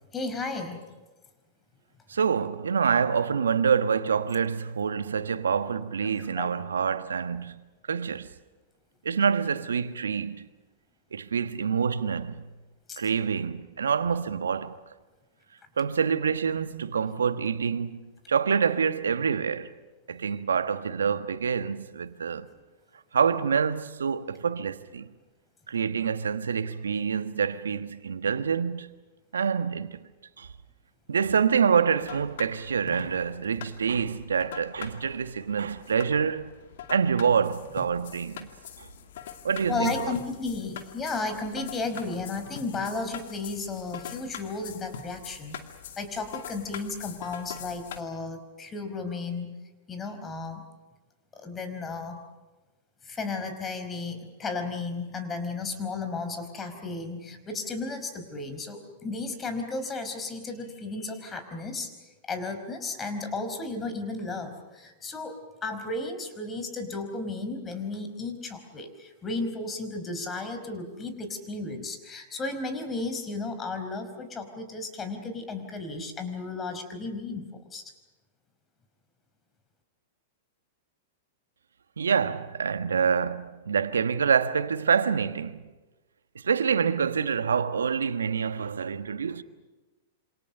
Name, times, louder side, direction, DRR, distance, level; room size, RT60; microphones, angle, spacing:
voice 1, 0.1-0.8 6.0-6.5 12.9-13.0 39.7-45.6 46.0-49.5 49.9-50.6 51.4-52.2 53.0-61.9 62.3-77.8, left 3 dB, 20° left, 4.9 m, -34 dB
voice 2, 2.1-8.3 9.0-10.5 11.1-12.5 13.0-14.8 15.8-19.7 20.1-22.5 23.1-25.1 25.7-28.9 29.3-30.0 30.4-30.5 31.1-36.5 36.9-38.5 38.8-38.9 39.4-40.1 82.0-85.6 86.3-89.4, right 6 dB, 75° right, 1.4 m, -26 dB
sound 1, 32.0-48.0, left 9 dB, 65° left, 2.4 m, -43 dB
27.5 x 26.5 x 6.8 m
figure-of-eight pair, 105°, 0 cm